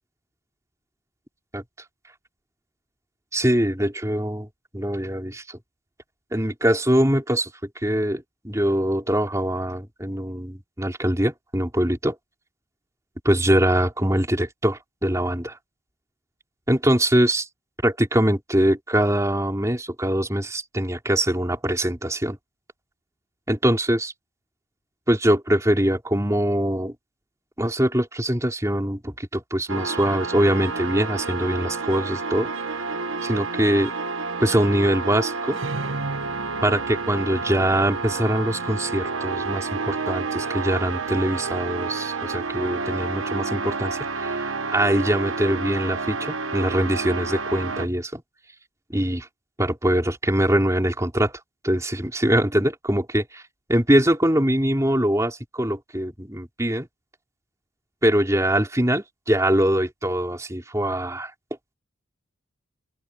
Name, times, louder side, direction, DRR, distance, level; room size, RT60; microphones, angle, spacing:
voice 1, 3.3-4.5 4.7-5.6 6.3-7.5 7.8-12.1 13.2-15.6 16.7-17.4 17.8-22.4 23.5-24.1 25.1-26.9 27.6-32.5 33.2-33.9 34.4-35.6 36.6-48.2 48.9-49.3 49.6-51.3 51.6-53.4 53.7-56.9 58.0-61.3, equal, 15° right, 4.6 m, -23 dB
sound 1, 29.7-47.9, right 4 dB, 90° right, 1.3 m, -29 dB
open air
head